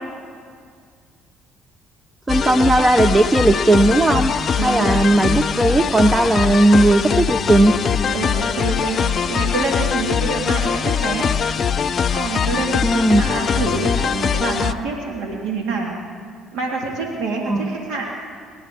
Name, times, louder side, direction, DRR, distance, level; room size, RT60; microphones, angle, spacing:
sound 1, 2.3-14.7, left 7 dB, 45° left, 0.6 m, -22 dB
voice 1, 2.3-4.3 4.6-7.7 12.8-13.2 17.5-17.7, right 2 dB, 20° right, 9 dB, 0.6 m, -16 dB
voice 2, 4.6-4.9 8.1-9.0 9.3-11.3 12.1-15.9 16.5-18.1, right 3 dB, 70° right, 0 dB, 2.1 m, -26 dB
24.5 x 10.0 x 3.7 m, 2.1 s
hypercardioid pair, 65°, 0 cm